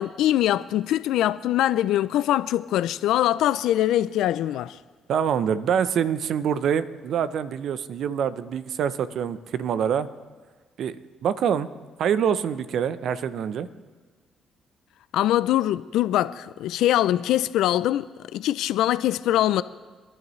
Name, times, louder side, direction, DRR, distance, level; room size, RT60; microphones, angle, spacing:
voice 1, 0.0-4.8 15.1-18.1 18.3-19.6, left 13 dB, 80° left, 0.3 m, -23 dB
voice 2, 5.1-10.1 10.8-11.0 11.2-11.7 12.0-13.7, right 8 dB, 70° right, 0.6 m, -25 dB
27.0 x 11.0 x 3.1 m
supercardioid pair, 70°, 0 cm